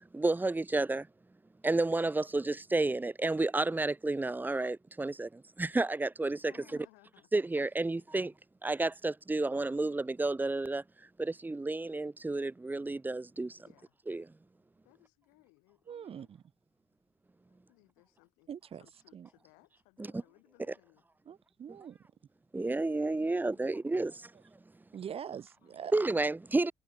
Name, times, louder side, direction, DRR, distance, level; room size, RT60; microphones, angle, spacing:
voice 1, 0.1-1.0 1.6-5.3 5.6-6.4 7.3-8.3 8.6-10.8 11.2-13.5 14.1-14.2 20.0-20.2 22.5-24.1 25.9-26.7, right 2 dB, 15° right, 0.8 m, -31 dB
voice 2, 6.3-7.3 7.9-8.2 13.6-13.9 14.8-16.3 17.5-18.5 18.8-21.0 23.5-23.9 25.6-25.8, left 36 dB, 90° left, 6.8 m, -64 dB
voice 3, 15.9-16.4 18.5-18.9 19.1-19.3 21.2-22.0 24.9-25.9, right 8 dB, 45° right, 1.5 m, -43 dB
supercardioid pair, 75°, 13 cm